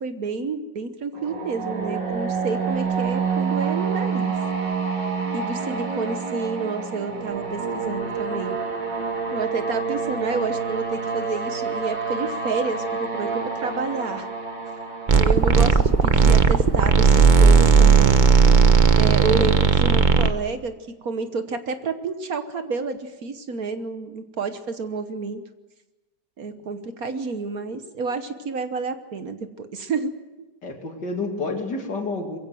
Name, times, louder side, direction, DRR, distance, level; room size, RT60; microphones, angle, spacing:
voice 1, 0.0-4.3 5.3-8.6 9.3-14.3 15.1-18.2 18.9-20.7 21.0-25.4 26.4-30.1, right 4 dB, 55° right, 9 dB, 1.5 m, -29 dB
sound 1, 1.1-17.0, right 5 dB, 90° right, 3.6 m, -28 dB
sound 2, 15.1-20.3, right 5 dB, 35° right, 0.8 m, -15 dB
voice 2, 30.6-32.4, left 3 dB, 70° left, 3 dB, 3.2 m, -29 dB
22.5 x 16.0 x 7.7 m, 1.1 s
omnidirectional pair, 1.9 m